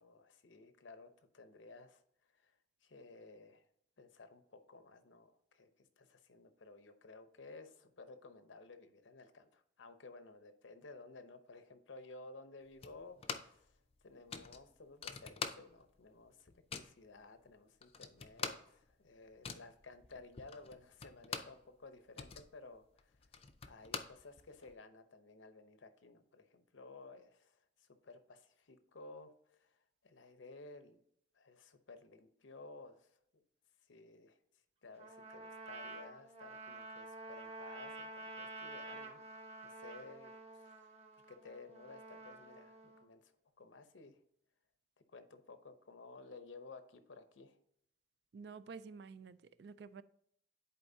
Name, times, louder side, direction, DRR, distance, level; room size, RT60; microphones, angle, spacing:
voice 1, 0.0-2.0 2.3-2.5 2.8-3.6 4.0-13.8 14.0-23.1 23.7-31.0 31.3-33.1 33.9-34.4 34.8-39.2 39.6-44.2 45.1-47.6, left 3 dB, 90° left, 9 dB, 0.8 m, -56 dB
sound 1, 12.8-13.7 13.9-14.0 14.3-16.0 16.3-17.0 17.5-17.6 17.8-21.6 22.0-24.7, left 5 dB, 30° left, 0.4 m, -45 dB
Trumpet, 35.0-43.0, right 2 dB, 35° right, 1.0 m, -50 dB
voice 2, 48.3-50.0, right 5 dB, 60° right, 14 dB, 0.3 m, -50 dB
10.5 x 4.4 x 2.7 m, 0.72 s
head